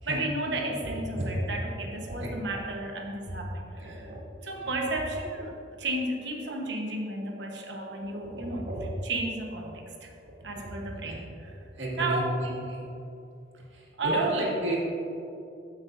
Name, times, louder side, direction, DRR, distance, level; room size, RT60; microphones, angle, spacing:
voice 1, 0.1-4.1 4.4-8.7 9.0-10.1 10.4-11.5 11.9-12.3 14.0-14.3, right 2 dB, 65° right, 1 dB, 1.1 m, -33 dB
voice 2, 0.8-1.4 2.1-2.6 3.3-3.4 3.7-4.2 4.5-4.7 5.3-5.4 8.3-8.9 10.5-10.8 11.0-11.2 11.7-12.8 13.7-14.8, right 1 dB, 90° right, -4 dB, 2.0 m, -33 dB
15.0 x 5.9 x 2.6 m, 2.7 s
head